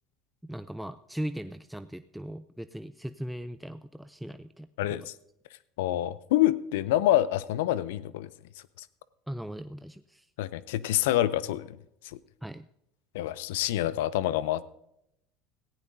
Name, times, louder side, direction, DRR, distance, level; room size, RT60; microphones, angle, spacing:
voice 1, 0.4-5.0 9.3-10.3 12.4-12.7, right 1 dB, 5° right, 10 dB, 0.4 m, -39 dB
voice 2, 4.8-5.1 5.8-8.3 10.4-11.8 12.0-12.2 13.1-14.6, left 14 dB, 80° left, 18 dB, 0.5 m, -27 dB
17.0 x 15.5 x 2.7 m, 0.81 s
supercardioid pair, 95°, 0 cm